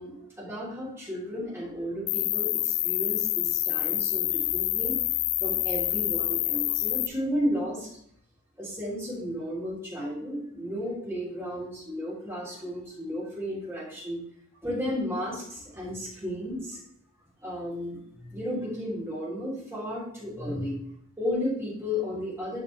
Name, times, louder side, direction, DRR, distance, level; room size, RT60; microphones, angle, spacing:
voice 1, 0.0-5.0 5.4-7.9 8.6-14.2 14.6-16.8 17.4-20.8 21.2-22.6, equal, 10° right, -6 dB, 3.0 m, -33 dB
Cricket, 2.1-7.1, left 16 dB, 80° left, 0.4 m, -27 dB
11.0 x 5.2 x 3.2 m, 0.70 s
head